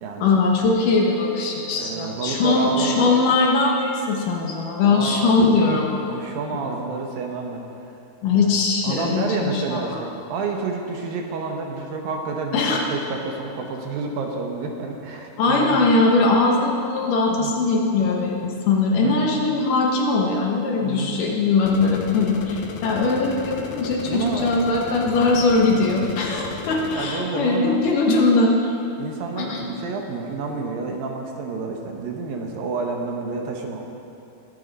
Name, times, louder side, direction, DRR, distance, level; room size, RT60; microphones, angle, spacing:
voice 1, 0.2-6.2 8.2-10.0 12.5-12.8 15.4-28.7 29.4-29.6, left 3 dB, 70° left, -1 dB, 2.5 m, -20 dB
voice 2, 1.7-3.2 4.8-5.3 6.1-7.6 8.3-8.5 8.8-15.8 17.4-17.5 19.0-19.3 20.8-21.2 24.1-24.5 25.7-26.0 26.9-27.8 29.0-33.8, right 4 dB, 75° right, 2 dB, 2.7 m, -29 dB
sound 1, 21.7-27.1, left 5 dB, 90° left, 2.9 m, -35 dB
22.0 x 8.3 x 4.1 m, 2.8 s
omnidirectional pair, 4.4 m